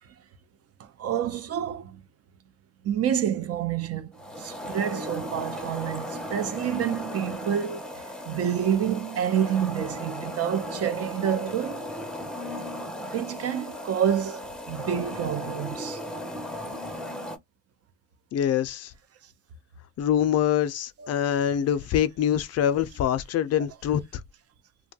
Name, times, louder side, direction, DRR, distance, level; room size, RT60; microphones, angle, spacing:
voice 1, 1.0-2.0 2.8-4.1 4.4-7.8 8.3-11.9 13.1-16.0 21.0-21.1, right 9 dB, 55° right, 0.5 m, -28 dB
sound 1, 4.1-17.4, equal, 5° left, 0.5 m, -36 dB
voice 2, 18.3-18.9 20.0-24.0, left 9 dB, 55° left, 0.4 m, -24 dB
2.6 x 2.2 x 2.6 m
cardioid pair, 90°, 30 cm